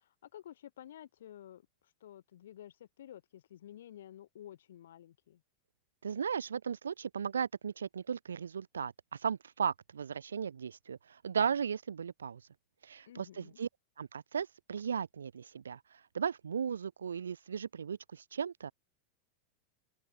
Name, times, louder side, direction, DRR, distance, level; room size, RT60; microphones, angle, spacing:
voice 1, 0.0-5.4 13.1-13.6, left 11 dB, 60° left, 7.3 m, -52 dB
voice 2, 6.0-11.0 11.2-12.4 12.8-13.7 14.0-15.8 16.1-18.7, right 7 dB, 70° right, 4.5 m, -36 dB
open air
figure-of-eight pair, 90°, 0 cm